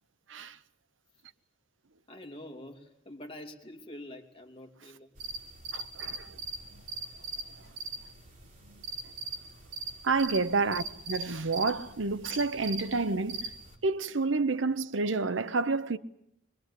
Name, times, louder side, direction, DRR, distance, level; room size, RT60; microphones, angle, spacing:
voice 1, 2.1-5.1, left 1 dB, 30° left, 2.9 m, -46 dB
sound 1, 5.2-13.7, right 3 dB, 40° right, 4.3 m, -41 dB
voice 2, 5.7-6.3 10.0-13.5 13.8-16.0, right 3 dB, 75° right, 0.8 m, -29 dB
22.5 x 22.5 x 8.4 m
head